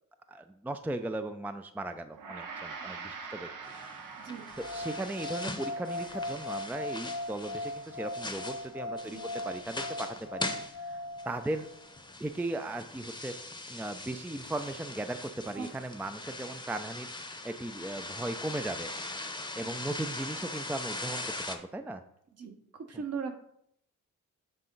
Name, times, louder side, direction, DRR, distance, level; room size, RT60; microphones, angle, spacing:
voice 1, 0.3-3.5 4.7-9.2 9.4-11.7 12.2-13.4 13.7-19.3 19.6-22.0, right 2 dB, 5° right, 9 dB, 0.4 m, -37 dB
Gong, 2.1-11.5, right 5 dB, 80° right, 0.8 m, -47 dB
sound 1, 3.6-21.6, left 2 dB, 15° left, 0.8 m, -41 dB
sound 2, 4.5-11.7, left 1 dB, 60° left, 0.7 m, -39 dB
voice 2, 22.4-23.3, right 5 dB, 50° right, 5 dB, 1.1 m, -38 dB
7.7 x 3.6 x 3.9 m, 0.72 s
cardioid pair, 60°, 32 cm